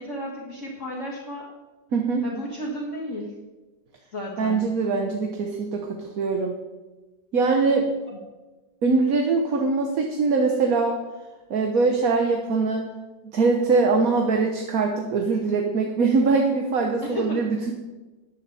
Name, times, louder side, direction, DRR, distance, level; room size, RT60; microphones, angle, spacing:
voice 1, 0.0-1.5 2.2-3.4 4.1-4.6 8.1-8.2 17.0-17.4, equal, 40° left, -4 dB, 2.1 m, -33 dB
voice 2, 1.9-2.2 4.4-6.5 7.3-7.9 8.8-11.0 11.5-12.9 13.3-17.7, right 4 dB, 55° right, 3 dB, 1.4 m, -22 dB
13.5 x 9.7 x 4.2 m, 1.2 s
omnidirectional pair, 2.0 m